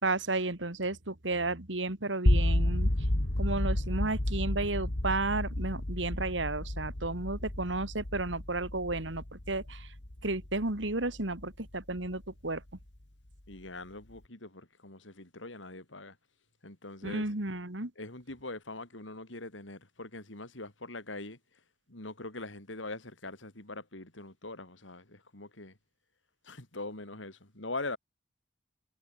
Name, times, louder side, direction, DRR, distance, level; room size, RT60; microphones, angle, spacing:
voice 1, 0.0-2.9 3.4-9.9 10.2-12.6 17.0-17.9, right 2 dB, 80° right, 2.9 m, -33 dB
sound 1, 2.3-12.2, left 1 dB, 70° left, 2.3 m, -31 dB
voice 2, 13.5-16.2 16.6-17.3 18.0-21.4 21.9-25.8 26.4-28.0, left 2 dB, 90° left, 4.3 m, -42 dB
head